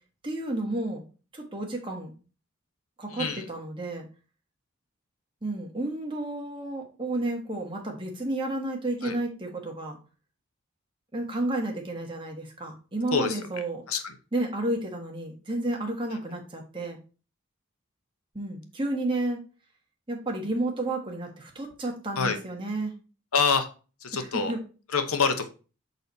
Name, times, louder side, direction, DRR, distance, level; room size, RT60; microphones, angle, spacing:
voice 1, 0.2-1.0 1.3-2.1 3.0-4.1 5.4-10.0 11.1-13.8 14.3-17.0 18.3-19.4 20.1-22.9 24.1-24.6, right 2 dB, 25° right, 1 dB, 1.4 m, -31 dB
voice 2, 3.1-3.4 9.0-9.2 13.1-13.4 13.9-14.1 22.2-22.4 23.3-23.7 24.0-24.5 24.9-25.5, left 5 dB, 85° left, 8 dB, 0.9 m, -26 dB
6.7 x 4.1 x 4.1 m, 0.35 s
head